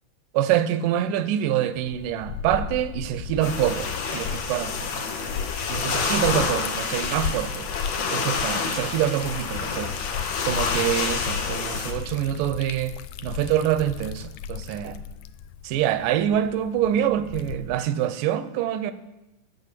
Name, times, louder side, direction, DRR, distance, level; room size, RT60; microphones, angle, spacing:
voice 1, 0.3-5.0 5.7-7.7 8.1-9.9 10.4-13.0 13.2-15.0 15.6-18.9, right 11 dB, 80° right, 2.3 m, -25 dB
Liquid, 1.8-17.9, left 7 dB, 80° left, 2.0 m, -35 dB
sound 1, 3.4-11.9, left 5 dB, 60° left, 2.1 m, -28 dB
11.0 x 7.1 x 8.2 m
omnidirectional pair, 3.8 m